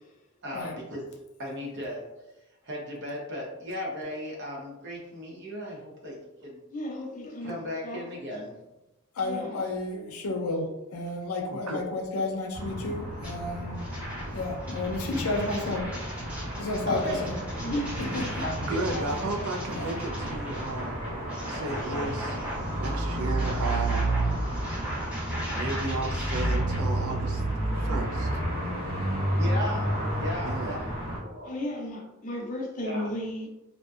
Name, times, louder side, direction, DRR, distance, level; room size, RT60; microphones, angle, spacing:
voice 1, 0.4-1.0 1.4-2.0 2.3-6.6 7.4-8.6 13.5-13.7 14.0-14.3 16.2-16.3 16.6-17.2 18.4-19.1 29.4-29.9 30.2-30.8 31.2-31.6 32.8-33.1, left 1 dB, 55° right, -3 dB, 0.8 m, -36 dB
voice 2, 6.7-7.6 7.8-8.0 9.2-9.5 12.6-12.8 17.6-17.9 21.4-22.1 31.4-33.5, left 1 dB, 35° left, -1 dB, 0.5 m, -35 dB
voice 3, 9.1-13.9 14.3-16.0 16.6-17.3 18.0-18.4 19.0-19.2 19.7-20.0, left 2 dB, 90° left, 2 dB, 0.5 m, -32 dB
sound 1, 12.5-31.2, right 1 dB, 25° right, 1.0 m, -31 dB
sound 2, 13.2-13.3 13.7-26.8, equal, 5° right, 0.7 m, -39 dB
voice 4, 18.6-20.9 21.5-22.4 22.8-24.2 25.5-27.4 27.8-28.4 30.4-30.8, right 2 dB, 80° right, 2 dB, 0.4 m, -34 dB
2.6 x 2.1 x 2.3 m, 0.95 s
head